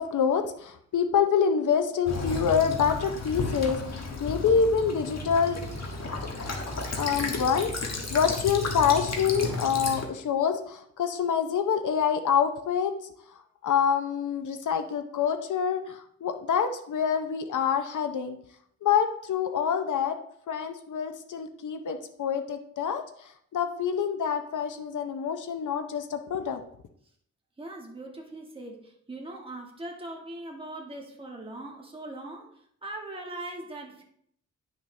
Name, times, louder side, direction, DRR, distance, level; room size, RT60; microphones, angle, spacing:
voice 1, 0.0-5.6 7.0-12.9 13.6-18.4 18.8-20.2 20.5-26.6, left 7 dB, 80° left, 7 dB, 0.8 m, -26 dB
Child speech kid speaking / Bird vocalization bird call bird song / Stream, 2.1-10.0, left 3 dB, 55° left, 1.5 m, -33 dB
voice 2, 27.6-32.5 32.8-34.0, right 2 dB, 15° right, 0 dB, 1.5 m, -40 dB
9.9 x 6.5 x 3.2 m, 0.68 s
wide cardioid pair, 120°, 30 cm